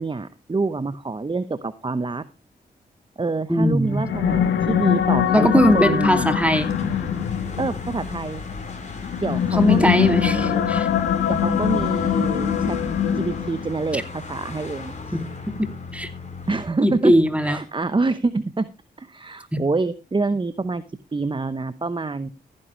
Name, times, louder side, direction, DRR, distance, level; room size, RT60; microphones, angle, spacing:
voice 1, 0.0-2.2 3.2-5.5 5.7-6.3 7.6-8.4 9.2-10.6 11.3-12.8 13.1-14.9 16.5-17.1 17.4-18.7 19.0-20.8 21.1-22.3, right 3 dB, 30° right, 14 dB, 0.9 m, -26 dB
voice 2, 3.5-4.0 5.3-6.7 9.5-10.9 13.9-14.0 15.1-15.2 15.6-16.1 16.8-17.6 19.5-19.6, equal, 5° right, 8 dB, 2.6 m, -20 dB
sound 1, 3.9-13.7, left 9 dB, 85° left, 1.3 m, -23 dB
sound 2, 5.5-16.6, left 4 dB, 40° left, 4.4 m, -36 dB
15.0 x 9.9 x 3.2 m, 0.28 s
supercardioid pair, 45°, 18 cm